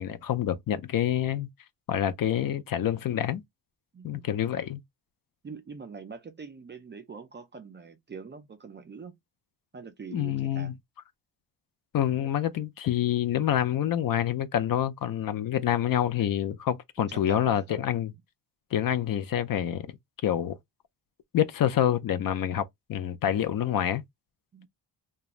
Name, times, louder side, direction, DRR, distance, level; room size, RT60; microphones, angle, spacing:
voice 1, 0.0-1.5 1.9-3.4 4.0-4.8 10.1-10.7 11.9-18.1 18.7-19.9 20.2-20.6 21.3-22.6 22.9-24.0, left 10 dB, 55° left, 0.5 m, -27 dB
voice 2, 3.9-4.3 5.4-9.2 9.7-10.8 17.0-17.8 24.5-24.7, right 5 dB, 25° right, 0.4 m, -44 dB
3.0 x 2.2 x 2.4 m
cardioid pair, 125°, 42 cm